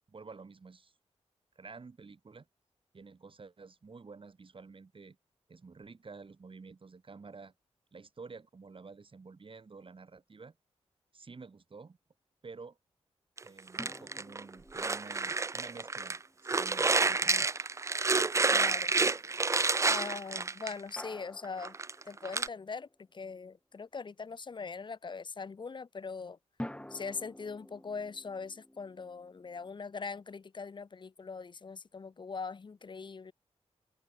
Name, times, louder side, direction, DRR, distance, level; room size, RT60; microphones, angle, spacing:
voice 1, 0.1-0.9 1.5-2.5 2.9-5.2 5.5-7.5 7.9-10.5 11.1-12.0 12.4-12.8 13.4-16.2 16.5-17.7, right 4 dB, 50° right, 3.4 m, -50 dB
sound 1, 13.4-16.2 16.5-21.0 21.4-22.5, right 4 dB, 25° right, 0.4 m, -29 dB
sound 2, 13.8-17.1 21.0-23.0 26.6-29.7, left 1 dB, 10° left, 5.6 m, -49 dB
voice 2, 18.5-18.9 19.8-21.8 22.1-26.4 26.9-33.3, left 5 dB, 40° left, 0.7 m, -41 dB
cardioid pair, 55°, 12 cm